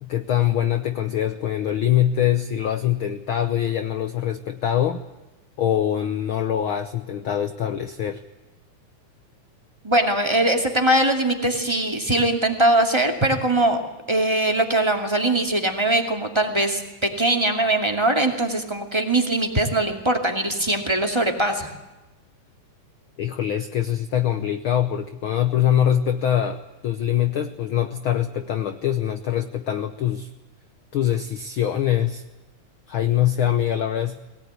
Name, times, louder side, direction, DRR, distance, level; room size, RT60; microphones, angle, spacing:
voice 1, 0.0-5.0 5.6-8.2 23.2-30.3 30.9-32.2 32.9-34.2, left 11 dB, 90° left, 9 dB, 1.1 m, -23 dB
voice 2, 9.8-13.8 14.1-21.7, right 1 dB, 10° right, 3 dB, 2.0 m, -21 dB
22.0 x 18.0 x 9.6 m, 1.1 s
omnidirectional pair, 3.6 m